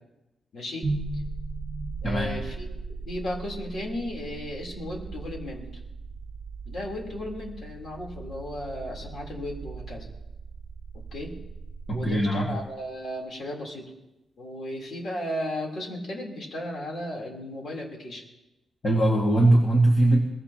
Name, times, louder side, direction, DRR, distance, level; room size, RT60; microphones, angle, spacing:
voice 1, 0.5-0.9 2.0-2.8 3.1-5.7 6.7-10.1 10.9-11.3 11.9-13.9 14.4-18.2, left 1 dB, 50° left, 0 dB, 3.7 m, -35 dB
sound 1, 0.8-12.9, right 3 dB, 30° right, 2.1 m, -38 dB
voice 2, 2.0-2.3 11.9-12.5 18.8-20.2, right 1 dB, 30° left, -1 dB, 2.0 m, -21 dB
22.5 x 18.5 x 3.0 m, 0.97 s
wide cardioid pair, 150°, 0 cm